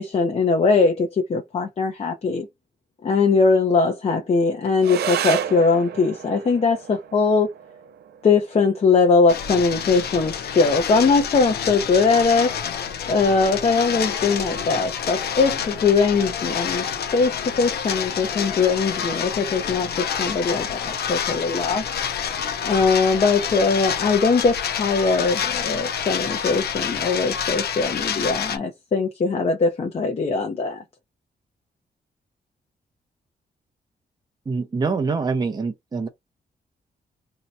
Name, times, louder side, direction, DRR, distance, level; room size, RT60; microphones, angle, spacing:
voice 1, 0.0-2.5 3.0-7.5 8.2-12.5 13.1-16.9 17.1-21.8 22.6-30.8, left 4 dB, 40° left, 0.7 m, -21 dB
sound 1, 4.8-13.8, right 9 dB, 85° right, 0.5 m, -34 dB
sound 2, 9.3-28.6, left 8 dB, 80° left, 0.6 m, -28 dB
voice 2, 34.5-36.1, right 4 dB, 25° right, 0.6 m, -25 dB
2.8 x 2.2 x 4.0 m
wide cardioid pair, 150°, 16 cm